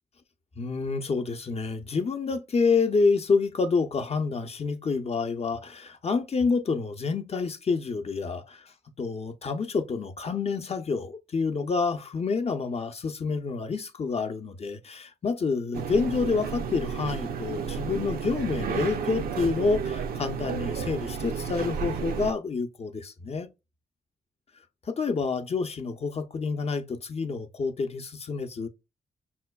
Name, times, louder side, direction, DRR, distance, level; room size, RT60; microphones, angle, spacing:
voice 1, 0.6-23.5 24.9-28.7, left 4 dB, 40° left, 0.6 m, -28 dB
sound 1, 15.7-22.3, right 6 dB, 65° right, 0.5 m, -32 dB
5.6 x 2.2 x 2.3 m
hypercardioid pair, 40°, 16 cm